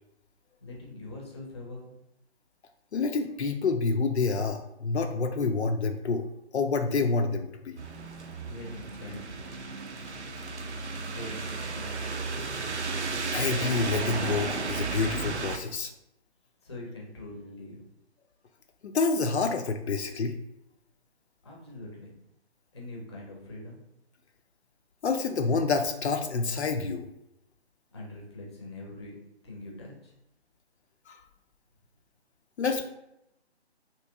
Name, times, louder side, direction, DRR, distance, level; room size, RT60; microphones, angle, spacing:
voice 1, 0.6-1.9 8.4-9.5 11.1-12.6 16.6-17.8 21.4-22.1 22.7-23.8 27.9-29.1 29.4-30.1, left 1 dB, 25° left, -2 dB, 0.6 m, -43 dB
voice 2, 2.9-6.3 6.5-7.8 13.3-15.9 18.8-20.4 25.0-27.1 31.1-31.2 32.6-32.9, left 4 dB, 75° left, 6 dB, 0.5 m, -28 dB
sound 1, 7.8-15.6, right 4 dB, 90° right, 0.6 m, -34 dB
3.0 x 2.8 x 3.4 m, 0.83 s
figure-of-eight pair, 155°, 33 cm